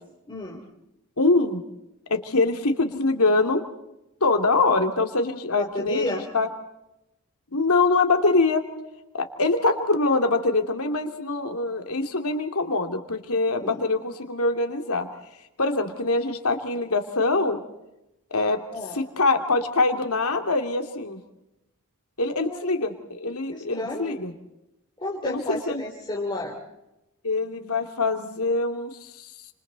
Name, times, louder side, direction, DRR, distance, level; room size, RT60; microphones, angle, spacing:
voice 1, 0.3-0.6 5.6-6.3 13.6-13.8 18.7-19.0 22.4-22.7 23.5-24.2 25.0-26.5, left 2 dB, 20° left, -2 dB, 3.4 m, -32 dB
voice 2, 1.2-1.6 2.1-3.6 4.2-6.5 7.5-8.6 9.1-15.1 15.6-17.6 18.3-18.6 19.2-21.2 22.2-24.3 25.2-25.8 27.2-28.9, left 3 dB, 80° left, 5 dB, 2.8 m, -24 dB
30.0 x 27.5 x 4.1 m, 0.89 s
head